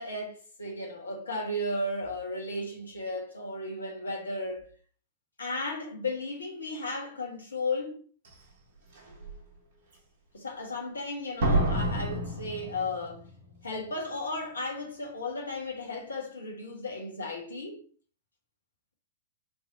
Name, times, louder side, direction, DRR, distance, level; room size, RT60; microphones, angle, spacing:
voice 1, 0.0-4.7 5.4-8.0 10.3-13.2 13.6-17.8, left 2 dB, 80° left, 1.1 m, -35 dB
Slam, 8.2-8.3 9.0-9.3 11.4-13.3 13.5-13.6, right 1 dB, 55° right, 1.3 m, -29 dB
3.5 x 3.2 x 2.7 m
figure-of-eight pair, 95°, 0 cm